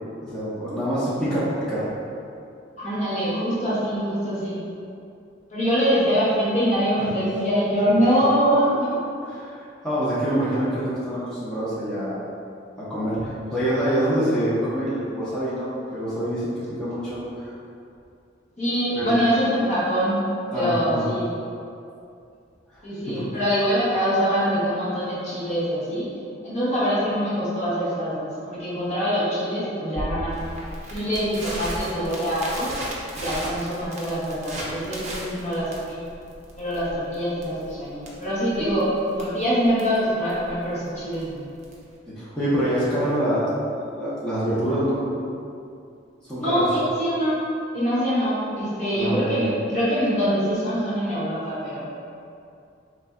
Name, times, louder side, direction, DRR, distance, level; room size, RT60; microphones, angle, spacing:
voice 1, 0.2-1.9 9.4-12.2 12.8-17.5 18.9-19.1 20.5-21.0 23.1-23.2 42.2-45.0 46.3-46.6 48.9-49.4, equal, 5° left, -12 dB, 0.9 m, -26 dB
voice 2, 2.8-4.6 5.5-9.0 18.6-21.3 22.8-26.1 26.4-30.4 30.9-32.7 33.1-36.0 36.6-41.4 46.4-47.5 47.7-51.9, equal, 35° left, -10 dB, 0.8 m, -24 dB
Crackle, 30.0-41.9, right 1 dB, 35° right, 0.5 m, -36 dB
3.9 x 3.3 x 2.4 m, 2.5 s
head